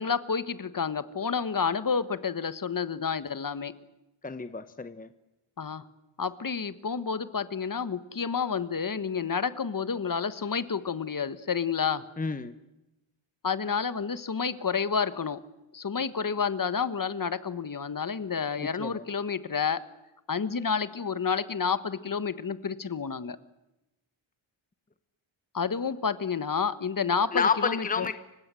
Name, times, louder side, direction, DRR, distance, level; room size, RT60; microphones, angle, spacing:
voice 1, 0.0-3.7 5.6-5.8 6.2-12.0 13.4-15.4 15.7-19.8 20.3-23.4 25.5-28.1, left 6 dB, 40° left, 14 dB, 1.4 m, -30 dB
voice 2, 4.2-5.1 12.2-12.5 18.6-19.0 27.3-28.2, left 5 dB, 15° left, 11 dB, 1.1 m, -30 dB
30.0 x 25.0 x 7.7 m, 0.96 s
wide cardioid pair, 175°, 49 cm